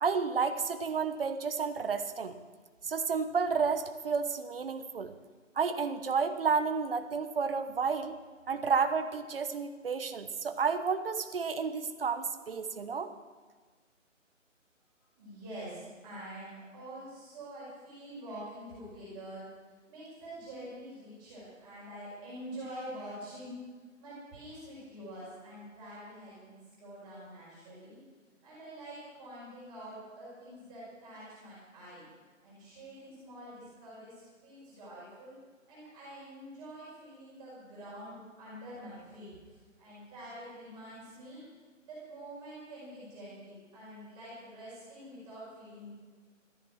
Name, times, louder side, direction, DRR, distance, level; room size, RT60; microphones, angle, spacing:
voice 1, 0.0-2.4 2.8-5.1 5.6-8.2 8.5-13.1, right 5 dB, 45° right, 9 dB, 1.1 m, -31 dB
voice 2, 15.2-19.4 19.9-23.6 24.0-28.0 28.4-32.0 32.4-35.4 35.7-41.5 41.9-45.9, right 1 dB, 10° right, -9 dB, 5.0 m, -46 dB
13.5 x 13.0 x 6.3 m, 1.4 s
hypercardioid pair, 170°, 39 cm